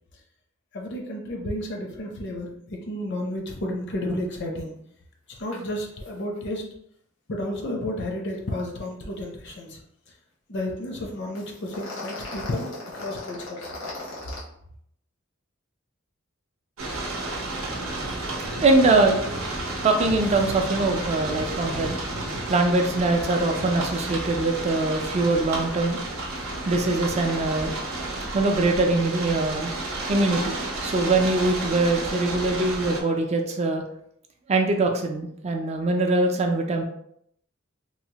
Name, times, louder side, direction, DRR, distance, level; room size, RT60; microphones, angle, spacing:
voice 1, 0.7-4.8 5.3-6.6 7.3-9.8 10.5-13.7, left 1 dB, 60° left, 1 dB, 0.6 m, -32 dB
sound 1, 5.5-5.6 5.9-6.1 6.4-6.5 11.4-14.4, left 2 dB, 85° left, 1.0 m, -37 dB
sound 2, 16.8-33.0, right 2 dB, 80° right, 0.6 m, -31 dB
voice 2, 18.0-19.5 19.8-22.0 22.5-26.0 26.6-27.7 28.3-29.7 30.1-33.8 34.5-36.8, right 2 dB, 35° right, 3 dB, 0.4 m, -23 dB
3.1 x 2.0 x 2.8 m, 0.71 s
head